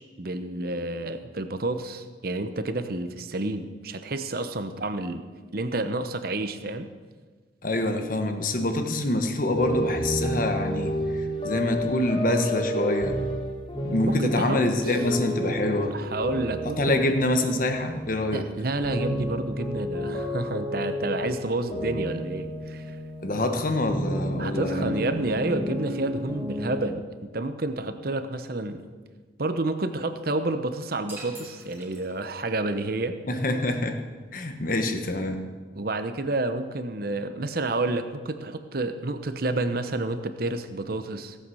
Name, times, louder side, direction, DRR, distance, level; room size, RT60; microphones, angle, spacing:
voice 1, 0.0-5.2 5.5-6.9 14.0-14.9 15.9-17.0 18.3-23.0 24.4-27.0 27.3-28.8 29.4-33.2 35.8-41.4, right 2 dB, 50° right, 9 dB, 0.8 m, -29 dB
voice 2, 7.6-11.0 11.4-13.1 13.8-15.9 16.8-18.5 23.2-25.0 33.3-34.0 34.3-35.4, left 1 dB, 45° left, 6 dB, 1.2 m, -26 dB
sound 1, 9.5-18.5 18.7-23.3 23.9-26.9, equal, 30° left, 2.6 m, -31 dB
sound 2, 31.1-32.6, right 2 dB, 10° right, 3.2 m, -45 dB
17.0 x 7.9 x 6.3 m, 1.5 s
head